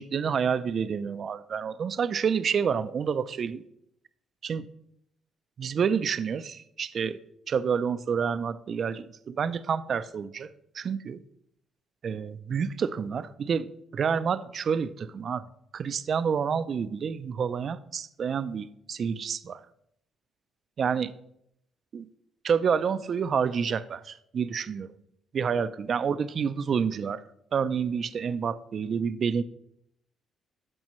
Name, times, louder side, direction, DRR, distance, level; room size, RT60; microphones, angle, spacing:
voice 1, 0.0-3.6 4.4-4.7 5.6-7.2 7.5-11.2 12.0-15.4 15.7-19.6 20.8-21.1 21.9-22.1 22.4-24.9 25.3-27.2 27.5-29.4, right 6 dB, 55° right, 13 dB, 0.5 m, -28 dB
13.5 x 5.3 x 3.1 m, 0.75 s
cardioid pair, 90°, 0 cm